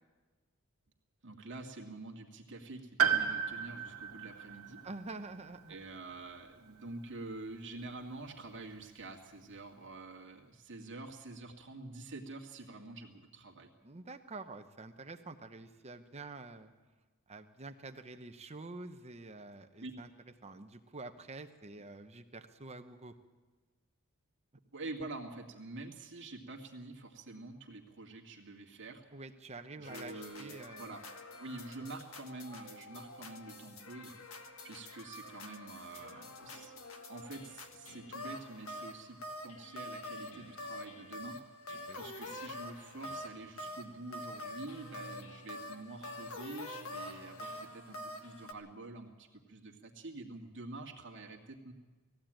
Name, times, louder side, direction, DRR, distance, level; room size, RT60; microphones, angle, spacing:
voice 1, 1.2-4.8 5.7-13.7 19.8-19.9 24.7-29.0 29.8-31.0 31.3-36.7 37.1-51.7, right 2 dB, 55° right, 0 dB, 2.1 m, -47 dB
Piano, 3.0-6.9 7.1-7.2 8.4-8.5, right 8 dB, 70° right, 1.9 m, -35 dB
voice 2, 4.8-5.7 13.8-16.7 17.3-20.1 20.4-23.1 29.1-30.9 41.9-42.0, right 3 dB, 30° right, 8 dB, 0.9 m, -47 dB
sound 1, 29.8-48.5, left 1 dB, 65° left, 1.7 m, -46 dB
19.5 x 15.5 x 8.9 m, 1.3 s
head